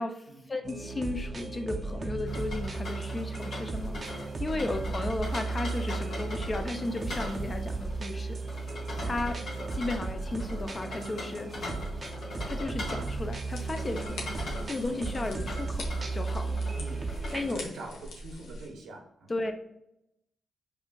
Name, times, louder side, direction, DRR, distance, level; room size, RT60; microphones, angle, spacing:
voice 1, 0.0-8.4 9.0-9.4 9.7-11.5 12.5-14.3 14.7-16.6 17.3-17.7 19.3-19.5, left 2 dB, 35° left, 7 dB, 0.5 m, -34 dB
sound 1, 0.6-17.6, right 3 dB, 45° right, 0.5 m, -35 dB
sound 2, 2.3-17.5, left 2 dB, 70° left, 1.2 m, -42 dB
sound 3, 13.3-18.7, left 1 dB, 90° left, 0.7 m, -43 dB
voice 2, 16.8-19.3, right 2 dB, 80° right, 2 dB, 0.8 m, -45 dB
4.9 x 2.5 x 2.3 m, 0.84 s
supercardioid pair, 55°, 0 cm